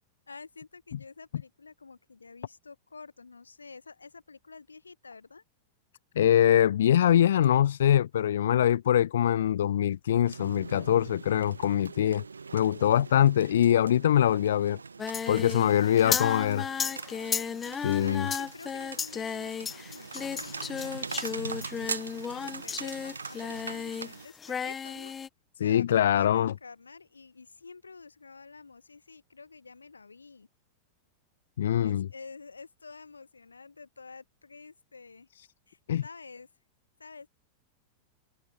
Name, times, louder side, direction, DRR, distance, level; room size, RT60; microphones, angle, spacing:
voice 1, 0.3-5.4 15.6-25.1 25.5-30.5 31.8-35.3 35.7-36.5 37.0-37.3, left 4 dB, 75° left, 5.3 m, -49 dB
voice 2, 6.2-12.2 12.5-14.8 15.3-16.7 17.8-18.3 25.6-26.5 31.6-32.1 35.9-36.0, left 10 dB, 60° left, 0.5 m, -23 dB
sound 1, 10.3-24.3, right 5 dB, 75° right, 2.5 m, -42 dB
Singing, 15.0-24.1 24.4-25.3, left 7 dB, 20° left, 2.0 m, -34 dB
figure-of-eight pair, 90°, 0 cm